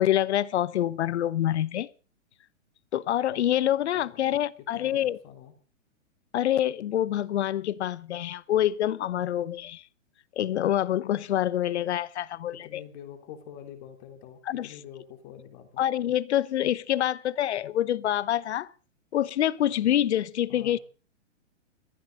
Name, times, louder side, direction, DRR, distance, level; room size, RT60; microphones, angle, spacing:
voice 1, 0.0-1.9 2.9-5.2 6.3-9.8 10.4-12.8 14.5-14.7 15.8-18.7 19.1-20.8, left 12 dB, 55° left, 1.0 m, -26 dB
voice 2, 4.8-5.5 12.5-15.8 20.5-20.8, left 9 dB, 35° left, 3.8 m, -46 dB
22.0 x 15.0 x 4.0 m
hypercardioid pair, 130°, 39 cm